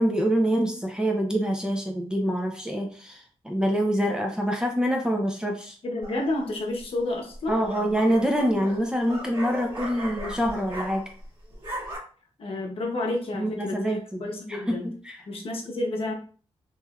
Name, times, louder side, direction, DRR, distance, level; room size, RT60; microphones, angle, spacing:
voice 1, 0.0-5.8 7.5-11.0 13.3-14.2 14.5-15.2, equal, 5° right, 2 dB, 0.4 m, -25 dB
voice 2, 5.8-7.6 12.4-14.9 15.3-16.1, left 2 dB, 55° left, 0 dB, 0.8 m, -30 dB
sound 1, 6.0-6.5 7.3-11.3 11.5-12.0, right 1 dB, 45° right, 1.6 m, -37 dB
3.1 x 3.0 x 2.3 m, 0.41 s
wide cardioid pair, 155°, 11 cm